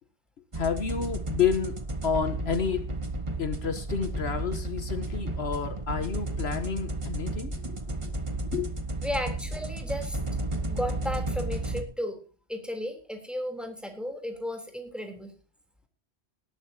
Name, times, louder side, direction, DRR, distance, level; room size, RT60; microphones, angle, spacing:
sound 1, 0.5-11.8, right 1 dB, 30° right, 1.5 m, -33 dB
voice 1, 0.6-1.8 2.0-2.8 3.4-7.8 8.5-8.7, left 6 dB, 70° left, 10 dB, 1.4 m, -30 dB
voice 2, 9.0-10.2 10.7-12.2 12.5-15.3, equal, ahead, 4 dB, 3.3 m, -34 dB
19.0 x 12.0 x 2.8 m, 0.35 s
omnidirectional pair, 1.1 m